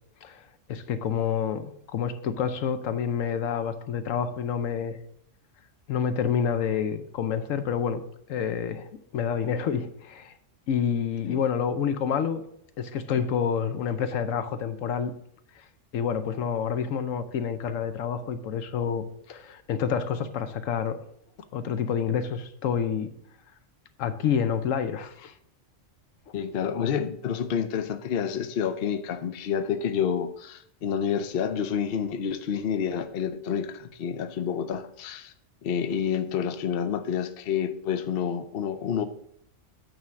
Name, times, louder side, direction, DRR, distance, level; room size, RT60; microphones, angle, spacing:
voice 1, 0.7-5.0 5.9-8.0 8.3-10.3 10.7-12.4 12.8-15.1 15.9-21.0 21.5-23.1 24.0-25.3, left 7 dB, 80° left, 1.1 m, -28 dB
voice 2, 26.3-35.3 35.6-39.0, left 7 dB, 55° left, 0.7 m, -29 dB
9.0 x 3.6 x 6.2 m
omnidirectional pair, 1.3 m